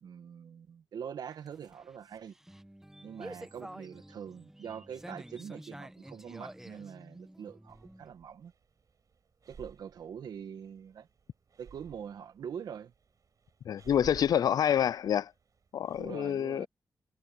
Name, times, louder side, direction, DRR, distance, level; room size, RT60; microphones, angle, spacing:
voice 1, 0.0-2.3 3.0-8.5 9.5-11.1 11.6-12.9 16.0-16.7, right 8 dB, 90° right, 1.6 m, -44 dB
sound 1, 1.3-8.1, right 1 dB, 5° right, 1.2 m, -49 dB
Breathing, 7.7-16.2, right 6 dB, 60° right, 6.9 m, -55 dB
voice 2, 13.7-15.3 15.7-16.7, left 9 dB, 75° left, 0.3 m, -27 dB
cardioid pair, 95°, 7 cm